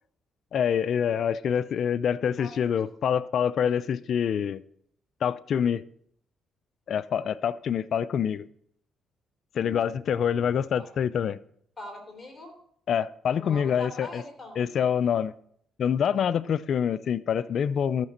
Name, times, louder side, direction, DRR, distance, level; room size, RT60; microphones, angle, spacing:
voice 1, 0.5-4.6 5.2-5.8 6.9-8.5 9.5-11.4 12.9-14.2 14.6-15.3 15.8-18.1, left 8 dB, 60° left, 14 dB, 0.3 m, -26 dB
voice 2, 11.8-12.5 13.4-14.6, left 2 dB, 15° left, 1 dB, 3.5 m, -42 dB
13.5 x 5.9 x 4.2 m, 0.66 s
cardioid pair, 90°, 0 cm